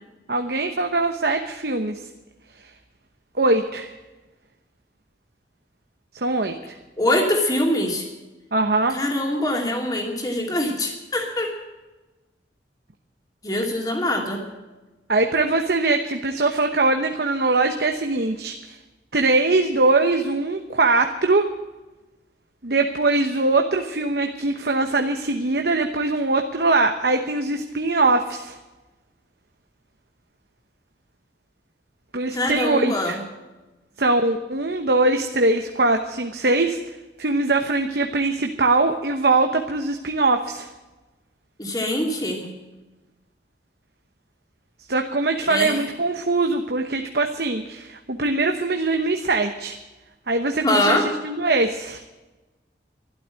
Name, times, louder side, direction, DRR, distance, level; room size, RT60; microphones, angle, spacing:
voice 1, 0.3-2.0 3.4-3.9 6.1-6.8 8.5-9.0 15.1-18.8 19.1-21.5 22.6-28.5 32.1-33.2 34.0-36.8 37.2-40.7 44.9-49.8 50.3-51.0 51.2-52.0, right 3 dB, 60° right, 5 dB, 1.0 m, -22 dB
voice 2, 7.0-8.1 8.9-11.5 13.4-14.4 32.3-33.2 41.6-42.5 45.5-45.8 50.6-51.1, left 1 dB, 20° left, 2 dB, 2.7 m, -23 dB
12.5 x 12.0 x 7.7 m, 1.1 s
head